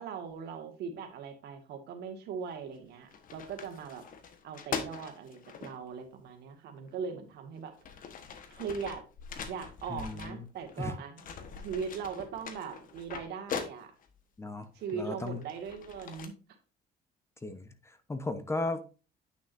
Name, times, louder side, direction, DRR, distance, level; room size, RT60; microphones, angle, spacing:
voice 1, 0.0-4.1 4.4-7.7 8.5-9.0 9.5-11.3 11.6-13.9 14.7-16.3, right 6 dB, 75° right, 1.9 m, -40 dB
sound 1, 2.5-2.8 3.1-5.7 6.9-7.0 7.6-10.9 11.2-14.2 14.8-16.3, left 6 dB, 55° left, 1.3 m, -42 dB
voice 2, 9.9-10.5 10.8-11.0 14.4-15.4 17.4-18.8, left 2 dB, 15° left, 1.0 m, -36 dB
9.4 x 6.1 x 2.6 m
cardioid pair, 110°, 17 cm